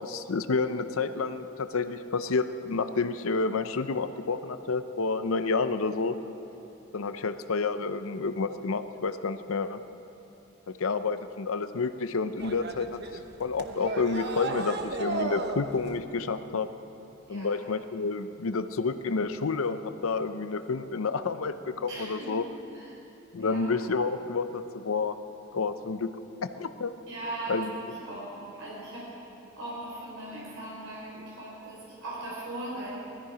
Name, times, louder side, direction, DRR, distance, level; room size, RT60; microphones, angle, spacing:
voice 1, 0.0-6.2 6.9-9.8 10.7-13.0 13.4-16.7 17.3-22.4 23.3-25.2 25.5-26.1 26.4-26.9 27.5-27.7, left 4 dB, 75° left, 11 dB, 0.6 m, -29 dB
sound 1, 12.4-16.0, right 3 dB, 55° right, 0.9 m, -34 dB
voice 2, 17.3-17.6 21.9-22.4 22.7-23.0 23.4-23.7 27.1-29.2 29.6-33.0, right 2 dB, 75° right, -6 dB, 4.6 m, -39 dB
19.5 x 14.0 x 5.0 m, 3.0 s
head